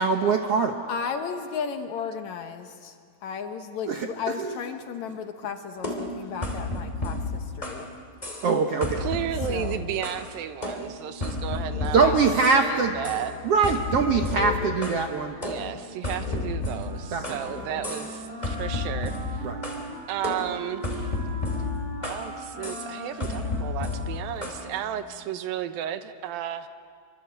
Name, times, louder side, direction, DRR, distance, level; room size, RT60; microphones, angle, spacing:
voice 1, 0.0-0.7 3.9-4.1 4.4-4.5 8.4-9.1 11.9-12.9 13.4-15.4 17.1-17.4 19.4-19.6, right 5 dB, 65° right, 4 dB, 1.5 m, -23 dB
voice 2, 0.9-7.9 9.5-9.8 11.8-12.2, left 6 dB, 65° left, 6 dB, 2.1 m, -34 dB
sound 1, 5.8-7.9 8.2-8.5 8.8-10.3 10.6-12.7 13.0-13.3 13.6-15.0 15.4-17.5 17.8-18.2 18.4-19.8 20.2-22.3 22.6-22.9 23.2-24.6, left 3 dB, 10° left, 2.7 m, -32 dB
voice 3, 9.0-13.3 15.4-19.5 20.1-21.1 22.0-26.7, right 10 dB, 90° right, 10 dB, 2.8 m, -33 dB
sound 2, 11.8-12.6 12.8-13.8 14.2-17.0 17.3-18.3, left 7 dB, 85° left, 3.4 m, -40 dB
Wind instrument woodwind instrument, 16.6-25.2, right 1 dB, 35° right, 5.7 m, -41 dB
25.5 x 24.5 x 8.1 m, 2.1 s
omnidirectional pair, 4.1 m